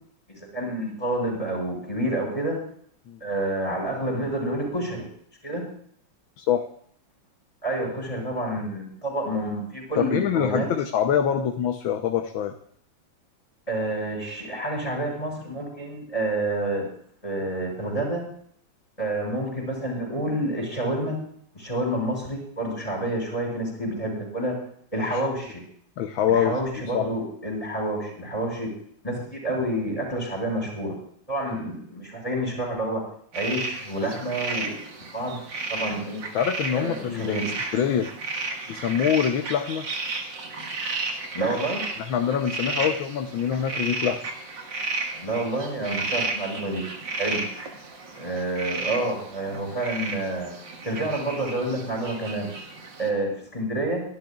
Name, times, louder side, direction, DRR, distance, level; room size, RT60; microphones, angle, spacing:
voice 1, 0.3-2.6 3.2-5.0 5.4-5.6 7.6-10.7 13.7-16.9 17.2-18.2 19.0-21.2 21.5-24.6 24.9-25.6 26.3-28.7 29.0-30.9 31.3-33.0 33.3-35.4 35.7-36.2 36.7-37.5 41.3-41.8 45.2-46.8 47.2-47.4 48.2-50.5 50.8-52.5 53.0-54.0, right 1 dB, 15° left, -1 dB, 6.1 m, -28 dB
voice 2, 6.4-6.7 10.0-12.5 25.1-25.2 26.0-26.6 26.9-27.1 31.5-31.6 36.3-37.4 37.7-38.1 38.7-39.9 42.0-44.2, left 8 dB, 90° left, 6 dB, 1.6 m, -24 dB
sound 1, 33.3-53.1, right 3 dB, 70° right, 2.5 m, -33 dB
24.0 x 11.5 x 2.4 m, 0.63 s
omnidirectional pair, 2.1 m